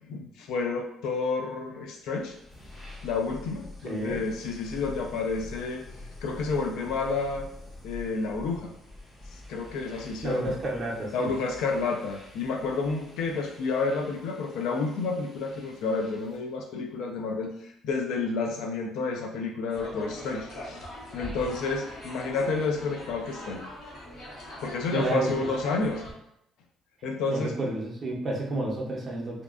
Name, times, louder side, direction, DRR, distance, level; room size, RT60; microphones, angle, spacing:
voice 1, 0.0-2.3 3.0-5.8 6.2-7.5 7.8-8.7 9.5-10.6 11.1-20.8 21.1-23.6 24.6-26.0 27.0-27.5, left 4 dB, 80° left, 2 dB, 0.3 m, -30 dB
sound 1, 1.9-16.5, left 2 dB, 20° left, 0.6 m, -47 dB
voice 2, 3.8-4.2 10.2-11.3 24.9-25.5 27.3-29.4, right 2 dB, 30° right, -3 dB, 0.5 m, -30 dB
sound 2, 19.7-26.1, equal, 60° left, 0.8 m, -42 dB
2.5 x 2.2 x 2.4 m, 0.75 s
cardioid pair, 155°, 0 cm